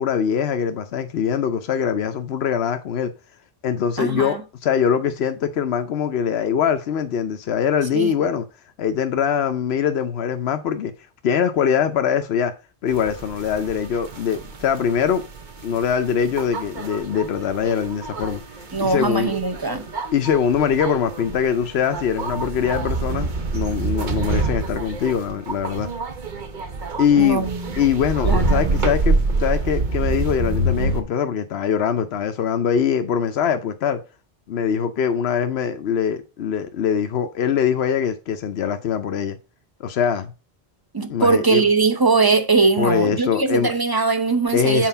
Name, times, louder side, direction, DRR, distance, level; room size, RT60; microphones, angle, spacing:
voice 1, 0.0-3.1 3.6-8.4 8.8-10.9 11.2-12.5 12.8-15.2 15.6-18.4 18.8-19.3 20.1-25.9 27.0-27.5 27.8-34.0 34.5-39.4 39.8-40.3 41.1-41.6 42.8-43.7 44.5-44.9, left 8 dB, 85° left, 1.0 m, -22 dB
voice 2, 4.0-4.4 7.9-8.1 18.7-19.9 27.2-27.7 28.2-28.8 40.9-44.9, right 4 dB, 25° right, 0.9 m, -20 dB
sound 1, 12.9-31.0, right 3 dB, 50° right, 1.0 m, -27 dB
7.6 x 4.6 x 5.6 m
omnidirectional pair, 1.0 m